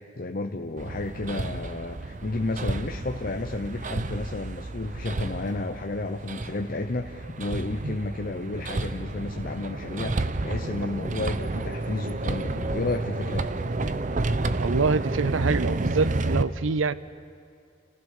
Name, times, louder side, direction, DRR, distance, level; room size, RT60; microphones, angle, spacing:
voice 1, 0.0-13.7, left 2 dB, 45° left, 4 dB, 0.7 m, -32 dB
Hammer, 0.8-16.4, right 2 dB, 40° right, 0.6 m, -30 dB
voice 2, 14.6-16.9, right 4 dB, 80° right, 16 dB, 0.6 m, -26 dB
29.5 x 15.0 x 6.6 m, 2.4 s
head